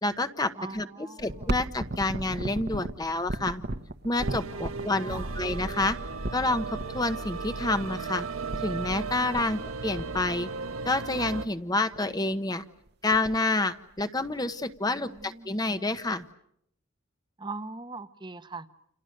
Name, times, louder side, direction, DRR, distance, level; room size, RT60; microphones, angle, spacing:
voice 1, 0.0-3.6 4.0-6.0 6.3-8.3 8.6-10.5 10.8-12.6 13.0-16.2, left 2 dB, 20° left, 10 dB, 1.0 m, -28 dB
voice 2, 0.5-1.2 4.5-5.3 9.3-9.5 14.9-15.5 17.4-18.7, right 3 dB, 20° right, 10 dB, 1.0 m, -41 dB
sound 1, 1.2-6.8 7.8-7.9 8.1-8.2 8.5-9.0 9.3-9.7 10.0-10.9 11.4-11.5 11.9-12.2 12.6-12.7 12.9-13.5 14.0-14.8 15.2-15.3 16.1-16.2, right 1 dB, 50° right, 1.2 m, -35 dB
sound 2, 4.2-11.5, right 4 dB, 90° right, 1.2 m, -36 dB
30.0 x 28.0 x 6.6 m, 0.75 s
head